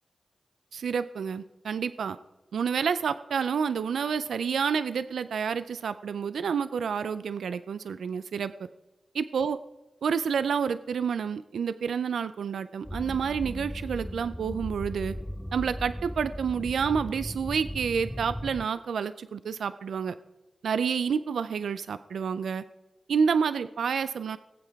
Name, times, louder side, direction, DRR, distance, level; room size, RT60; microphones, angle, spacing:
voice 1, 0.7-2.2 2.5-8.5 9.1-9.6 10.0-15.1 15.5-20.1 20.6-22.6 23.1-24.4, right 6 dB, 90° right, 13 dB, 0.3 m, -29 dB
sound 1, 12.8-18.7, equal, 5° left, 0.4 m, -37 dB
20.0 x 7.8 x 3.5 m, 1.0 s
cardioid pair, 50°, 0 cm